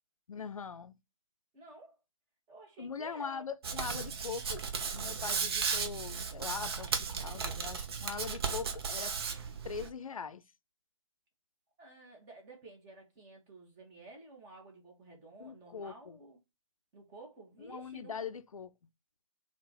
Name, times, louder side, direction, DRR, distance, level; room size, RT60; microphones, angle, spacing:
voice 1, 0.3-1.0 2.8-4.6 4.9-9.1 9.6-10.4 15.4-16.2 17.6-18.7, left 6 dB, 85° left, 0.4 m, -41 dB
voice 2, 1.5-2.0 2.5-3.4 11.8-16.4 16.9-18.3, right 2 dB, 20° right, 1.2 m, -52 dB
Hands, 3.6-9.9, right 5 dB, 50° right, 0.6 m, -35 dB
3.6 x 2.4 x 4.0 m
figure-of-eight pair, 135°, 17 cm